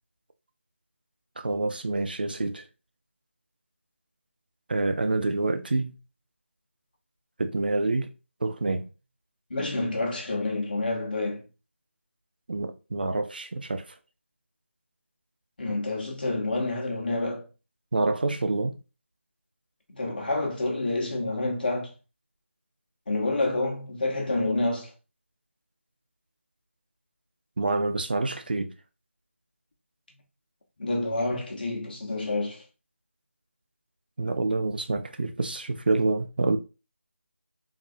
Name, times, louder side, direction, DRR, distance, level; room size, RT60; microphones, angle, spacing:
voice 1, 1.4-2.6 4.7-5.9 7.4-8.1 8.4-8.9 12.5-13.9 17.9-18.8 27.6-28.7 34.2-36.6, right 2 dB, 45° right, 0.4 m, -27 dB
voice 2, 9.5-11.4 15.6-17.5 19.9-21.9 23.1-24.9 30.8-32.6, left 2 dB, 40° left, 1.2 m, -28 dB
3.7 x 3.0 x 2.6 m
figure-of-eight pair, 170°, 7 cm